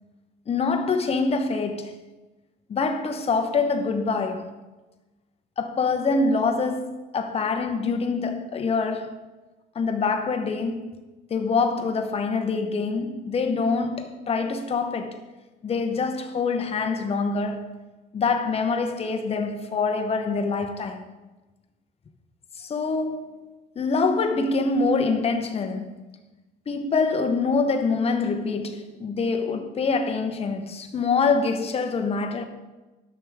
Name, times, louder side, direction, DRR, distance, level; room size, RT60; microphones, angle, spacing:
voice 1, 0.5-1.9 2.7-4.5 5.6-9.2 9.7-10.9 11.3-15.2 15.6-17.7 18.1-21.0 22.6-26.0 26.7-32.5, left 4 dB, 35° left, 1.0 m, -25 dB
12.5 x 6.2 x 3.6 m
cardioid pair, 110°, 17 cm